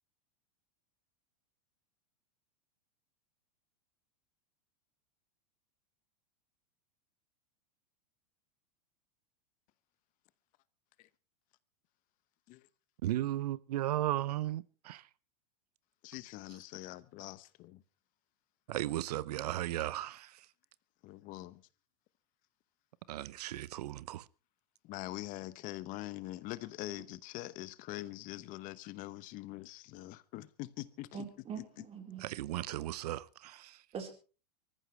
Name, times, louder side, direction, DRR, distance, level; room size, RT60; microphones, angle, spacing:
voice 1, 13.0-15.0 18.7-20.3 23.1-24.2 32.2-33.8, right 14 dB, 75° right, 0.8 m, -35 dB
voice 2, 16.0-17.8 21.0-21.6 24.8-31.2, left 17 dB, 40° left, 1.0 m, -44 dB
voice 3, 31.1-32.3 33.9-34.1, right 6 dB, 30° right, 4.3 m, -43 dB
23.5 x 14.5 x 3.3 m
hypercardioid pair, 125°, 20 cm